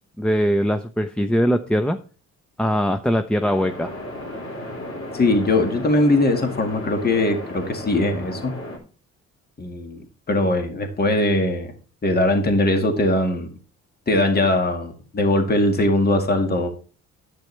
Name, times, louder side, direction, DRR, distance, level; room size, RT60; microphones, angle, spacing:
voice 1, 0.2-2.0 2.6-3.9, equal, 5° left, 9 dB, 0.6 m, -21 dB
sound 1, 3.4-8.8, left 1 dB, 45° left, 4.0 m, -34 dB
voice 2, 5.1-8.5 9.6-11.7 12.0-13.5 14.1-16.7, left 1 dB, 30° left, 5 dB, 2.0 m, -20 dB
10.5 x 8.9 x 3.3 m, 0.37 s
cardioid pair, 90°, 30 cm